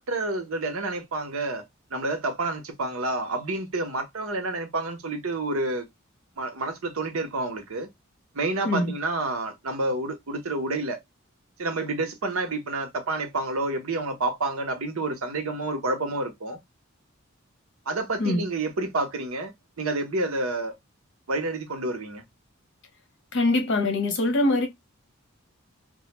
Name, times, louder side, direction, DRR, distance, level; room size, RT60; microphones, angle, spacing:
voice 1, 0.0-1.6 1.9-5.9 6.4-7.9 8.3-11.0 11.6-16.6 17.9-19.5 19.8-20.7 21.3-22.2, right 2 dB, 85° right, 0.8 m, -29 dB
voice 2, 23.3-24.7, left 2 dB, 60° left, 0.8 m, -23 dB
2.3 x 2.1 x 2.9 m
head